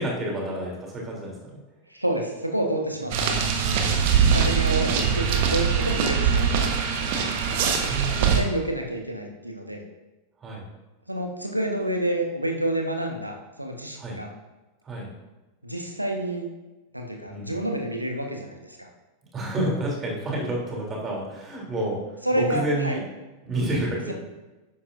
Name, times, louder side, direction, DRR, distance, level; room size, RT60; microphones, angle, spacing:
voice 1, 0.0-1.6 3.6-3.9 6.8-8.4 10.4-10.7 14.0-14.2 14.8-15.1 17.3-17.6 19.3-22.0 22.3-23.0 23.4-24.1, right 1 dB, 25° right, -2 dB, 3.2 m, -30 dB
voice 2, 1.9-3.4 4.3-6.7 8.1-9.8 11.1-14.3 15.6-16.5 16.9-18.9 22.2-23.0 24.1-24.2, right 1 dB, 85° right, 2 dB, 1.4 m, -29 dB
sound 1, 3.1-8.4, right 6 dB, 50° right, 1.3 m, -22 dB
11.5 x 10.0 x 2.6 m, 1.1 s
figure-of-eight pair, 90°, 0 cm